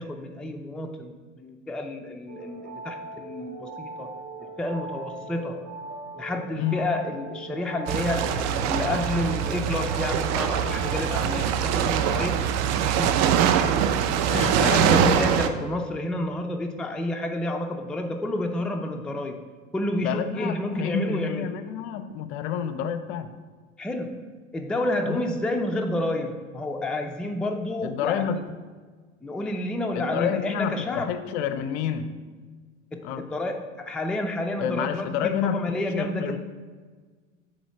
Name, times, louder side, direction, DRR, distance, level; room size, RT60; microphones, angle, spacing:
voice 1, 0.0-4.1 4.6-5.7 6.2-12.5 12.8-13.1 14.3-19.4 19.7-21.6 23.8-28.4 29.2-31.2 32.9-36.4, left 1 dB, ahead, 5 dB, 0.4 m, -30 dB
sound 1, 2.3-11.5, right 2 dB, 60° right, 2.0 m, -40 dB
voice 2, 6.5-6.9 14.3-15.1 20.0-23.3 25.1-25.2 27.8-28.4 29.9-32.2 33.0-33.2 34.6-36.4, left 8 dB, 55° left, 11 dB, 0.6 m, -29 dB
sound 2, 7.9-15.5, right 8 dB, 45° right, 0.6 m, -23 dB
8.0 x 3.2 x 6.0 m, 1.4 s
hypercardioid pair, 80°, 38 cm